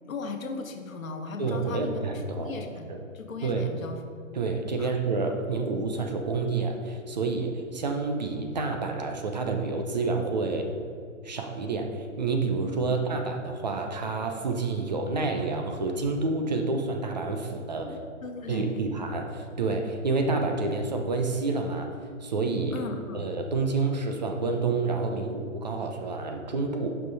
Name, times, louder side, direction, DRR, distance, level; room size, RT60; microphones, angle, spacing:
voice 1, 0.0-4.0 4.8-4.9 12.7-12.9 17.8-17.9 18.2-18.8 22.7-23.3, left 4 dB, 80° left, 5 dB, 1.2 m, -38 dB
voice 2, 1.4-2.6 2.9-3.0 3.4-3.7 4.3-10.7 11.2-11.9 12.2-17.9 18.5-21.9 22.2-22.8 23.1-26.9, right 3 dB, 35° right, 4 dB, 0.6 m, -28 dB
8.7 x 5.7 x 4.0 m, 2.3 s
hypercardioid pair, 165°, 40 cm